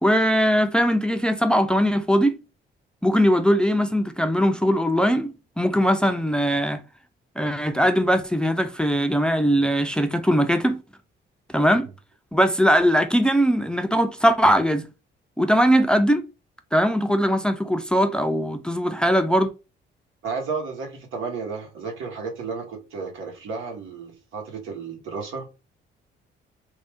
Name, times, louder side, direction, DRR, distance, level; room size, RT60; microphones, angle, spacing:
voice 1, 0.0-2.4 3.0-6.8 7.4-10.8 11.5-11.9 12.3-14.9 15.4-16.2 16.7-19.5, equal, 5° left, 0.4 m, -20 dB
voice 2, 20.2-25.5, right 5 dB, 85° right, 1.4 m, -32 dB
3.2 x 2.6 x 3.5 m
cardioid pair, 90°, 20 cm